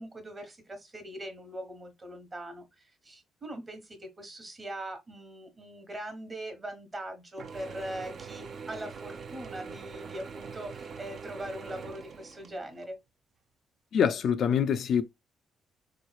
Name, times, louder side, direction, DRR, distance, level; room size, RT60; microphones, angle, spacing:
voice 1, 0.0-13.0, right 1 dB, 30° right, 1.1 m, -41 dB
Mechanisms / Drill, 7.4-12.9, right 5 dB, 55° right, 0.5 m, -43 dB
voice 2, 13.9-15.0, left 7 dB, 65° left, 0.3 m, -25 dB
3.8 x 3.1 x 2.3 m
cardioid pair, 90°, 0 cm